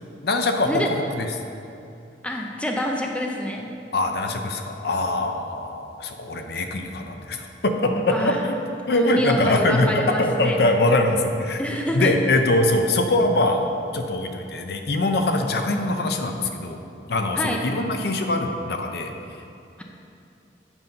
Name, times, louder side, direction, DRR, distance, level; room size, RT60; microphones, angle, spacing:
voice 1, 0.2-1.3 3.9-8.6 8.9-11.6 11.9-16.8 17.1-19.1, left 2 dB, 60° left, 5 dB, 0.6 m, -23 dB
voice 2, 2.2-3.7 8.1-8.4 8.9-10.6 11.6-12.2 17.4-17.6, equal, 5° left, 1 dB, 0.5 m, -26 dB
8.1 x 5.4 x 5.3 m, 2.7 s
head